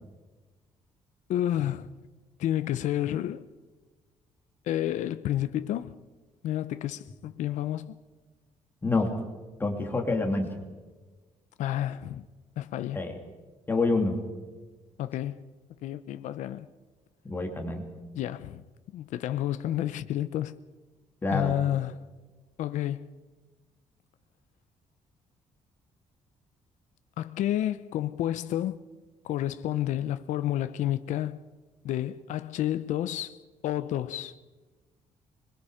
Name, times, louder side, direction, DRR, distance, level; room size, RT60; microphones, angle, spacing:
voice 1, 1.3-1.9 2.4-3.5 4.7-6.0 6.4-7.9 11.6-12.2 12.6-13.0 15.0-15.4 15.8-16.7 18.1-18.6 18.9-20.6 21.3-22.0 22.6-23.1 27.2-28.8 29.2-31.4 31.8-33.4 33.6-34.3, left 12 dB, 85° left, 0.7 m, -30 dB
voice 2, 9.6-10.5 12.9-13.2 13.7-14.2 17.2-17.8 21.2-21.5, left 3 dB, 15° left, 2.9 m, -27 dB
25.5 x 22.0 x 5.1 m
cardioid pair, 155°, 12 cm